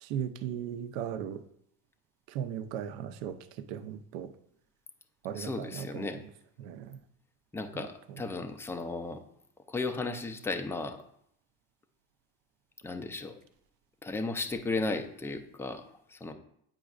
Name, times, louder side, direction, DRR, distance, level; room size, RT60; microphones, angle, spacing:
voice 1, 0.0-1.4 2.3-4.3 5.2-6.2 6.6-7.0, right 9 dB, 70° right, 0.7 m, -37 dB
voice 2, 5.3-6.2 7.5-9.2 9.7-11.0 12.8-13.3 14.0-16.3, left 3 dB, 5° left, 0.4 m, -35 dB
9.1 x 5.1 x 2.4 m
supercardioid pair, 95°, 45 cm